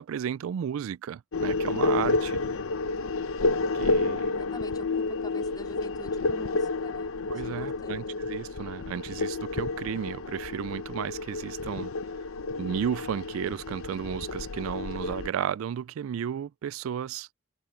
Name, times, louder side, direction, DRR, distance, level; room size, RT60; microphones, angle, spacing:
voice 1, 0.0-2.4 3.7-4.3 7.3-11.9 12.6-17.3, right 8 dB, 80° right, 0.3 m, -33 dB
sound 1, 1.3-15.3, left 3 dB, 90° left, 0.7 m, -30 dB
voice 2, 4.3-8.3, left 1 dB, 20° left, 4.2 m, -47 dB
open air
head